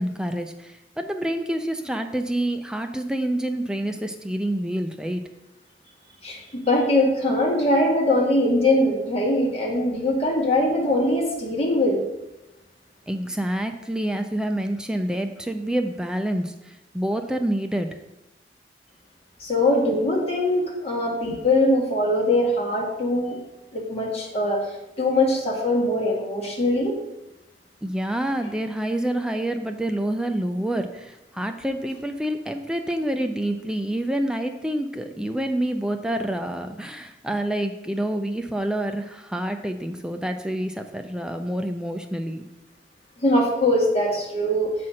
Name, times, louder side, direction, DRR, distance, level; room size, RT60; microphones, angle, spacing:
voice 1, 0.0-5.2 13.1-17.9 27.8-42.5, right 1 dB, 5° right, 5 dB, 0.4 m, -27 dB
voice 2, 6.2-12.0 19.4-23.4 23.7-24.6 25.0-26.9 43.2-44.7, left 1 dB, 35° left, -2 dB, 1.9 m, -22 dB
7.5 x 4.3 x 6.2 m, 0.98 s
head